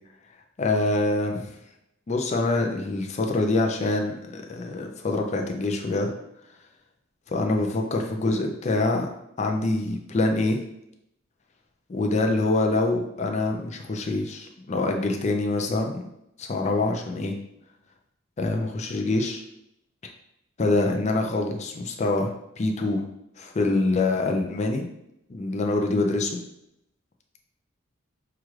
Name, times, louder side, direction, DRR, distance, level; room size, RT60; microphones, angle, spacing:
voice 1, 0.6-1.5 2.1-6.1 7.3-9.1 9.4-10.6 11.9-16.0 16.4-17.3 18.4-19.4 20.6-23.0 23.4-24.9 25.3-26.4, left 2 dB, 35° left, 2 dB, 0.4 m, -25 dB
5.8 x 2.4 x 3.1 m, 0.82 s
head